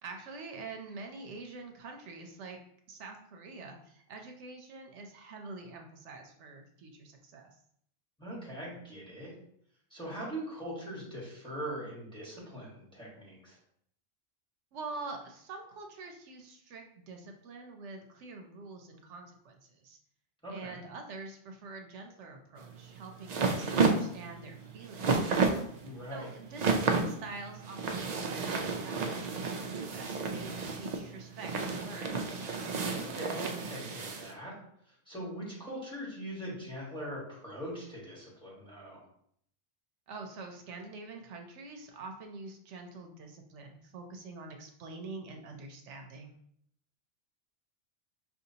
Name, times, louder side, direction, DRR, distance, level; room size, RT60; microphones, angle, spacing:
voice 1, 0.0-2.6 2.9-7.6 14.7-20.0 20.5-25.4 26.1-32.2 40.1-46.3, right 3 dB, 85° right, 3 dB, 0.9 m, -46 dB
voice 2, 8.2-9.3 9.9-13.6 20.4-20.8 25.8-26.3 33.0-34.5 34.9-39.0, right 1 dB, 5° left, -5 dB, 1.4 m, -41 dB
sound 1, 22.6-34.3, right 4 dB, 55° right, 0.4 m, -32 dB
5.7 x 2.7 x 2.8 m, 0.68 s
omnidirectional pair, 1.2 m